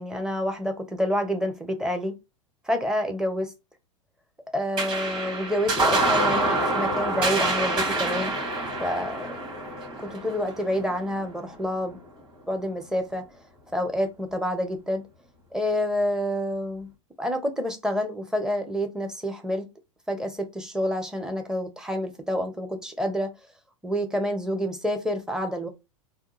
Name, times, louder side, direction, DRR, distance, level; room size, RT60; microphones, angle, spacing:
voice 1, 0.0-2.1 2.7-3.5 4.5-8.3 8.8-9.3 10.0-12.0 12.5-13.2 13.7-15.0 15.5-16.9 17.2-19.6 20.1-23.3 23.8-25.7, equal, 5° right, 0.8 m, -28 dB
sound 1, 4.8-11.5, right 2 dB, 30° right, 2.1 m, -26 dB
3.5 x 2.3 x 3.0 m
figure-of-eight pair, 95°, 17 cm